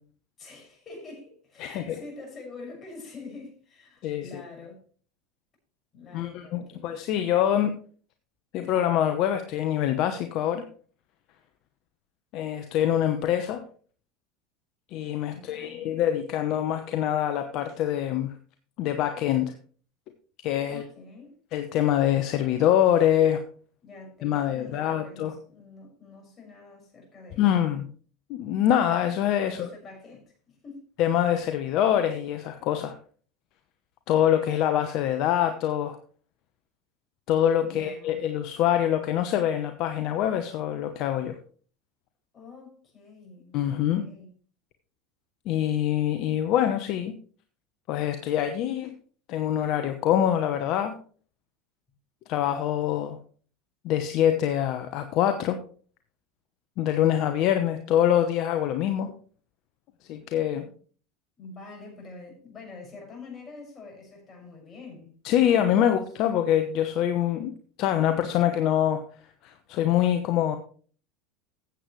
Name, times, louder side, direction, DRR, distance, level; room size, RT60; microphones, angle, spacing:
voice 1, 0.4-4.8 5.9-7.0 15.3-15.9 20.7-21.4 23.8-27.7 29.4-30.9 37.6-38.2 42.3-44.3 60.6-60.7 61.4-66.0, left 3 dB, 30° left, 6.2 m, -46 dB
voice 2, 1.6-2.0 4.0-4.4 6.1-7.8 8.5-10.7 12.3-13.6 14.9-18.3 18.8-19.5 20.4-20.9 21.5-23.4 24.2-25.3 27.4-27.9 28.3-29.7 31.0-33.0 34.1-36.0 37.3-41.4 43.5-44.0 45.4-47.2 47.9-48.9 49.3-51.0 52.3-53.2 53.8-55.6 56.8-59.1 60.1-60.6 65.2-67.5 67.8-69.0 69.4-70.6, left 10 dB, 55° left, 1.0 m, -25 dB
14.0 x 8.4 x 3.2 m
hypercardioid pair, 95°, 0 cm